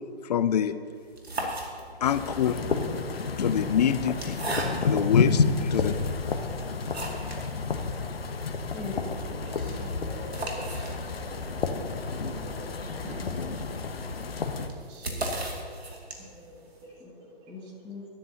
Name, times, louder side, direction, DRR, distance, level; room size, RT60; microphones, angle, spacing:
voice 1, 0.3-0.8 1.4-1.5 2.0-2.6 3.4-4.3 4.8-6.0, left 9 dB, 40° left, 13 dB, 0.6 m, -25 dB
sound 1, 1.0-2.2 3.1-5.1 5.7-5.8 6.3-7.5 7.8-7.9 8.1-8.2 8.6-16.5, right 1 dB, 75° right, 2.6 m, -37 dB
sound 2, 2.0-14.7, left 4 dB, 70° left, 1.2 m, -30 dB
voice 2, 8.7-9.6 13.0-13.6 17.0-17.1 17.5-18.1, left 3 dB, 10° left, -7 dB, 1.3 m, -40 dB
voice 3, 9.4-13.2 14.3-17.7, right 1 dB, 30° right, -1 dB, 2.6 m, -50 dB
20.0 x 12.5 x 2.9 m, 2.2 s
figure-of-eight pair, 130°, 31 cm